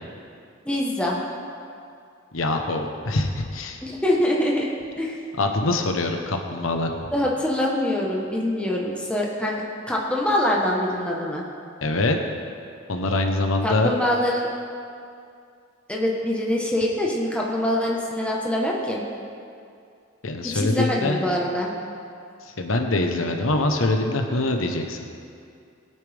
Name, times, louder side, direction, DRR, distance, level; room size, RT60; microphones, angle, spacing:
voice 1, 0.6-1.2 3.8-4.7 5.0-5.2 7.1-9.5 9.9-11.4 13.6-14.5 15.9-19.0 20.5-21.7, left 1 dB, 5° left, -3 dB, 1.2 m, -24 dB
voice 2, 2.3-3.8 5.4-6.9 11.8-12.2 12.9-13.9 20.2-21.2 22.4-25.0, left 2 dB, 85° left, 3 dB, 1.0 m, -24 dB
21.0 x 8.8 x 3.5 m, 2.4 s
head